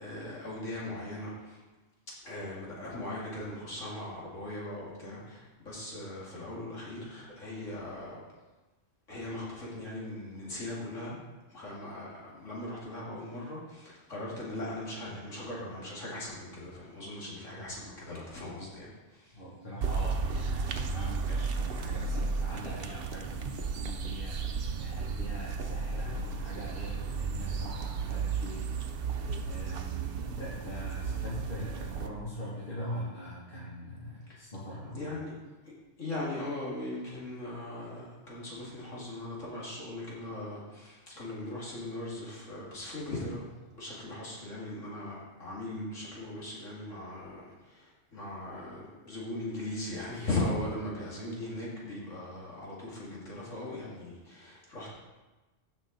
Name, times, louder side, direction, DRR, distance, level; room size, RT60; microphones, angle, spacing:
voice 1, 0.0-1.6 2.2-8.2 9.1-11.2 11.5-19.4 34.3-34.4 34.9-35.3 36.0-43.5 43.7-54.9, left 1 dB, 85° left, -6 dB, 2.8 m, -39 dB
voice 2, 19.3-35.1, equal, 45° left, -7 dB, 2.4 m, -42 dB
sound 1, 19.8-32.1, right 5 dB, 55° right, 0.9 m, -34 dB
15.5 x 6.1 x 4.0 m, 1.2 s
omnidirectional pair, 1.3 m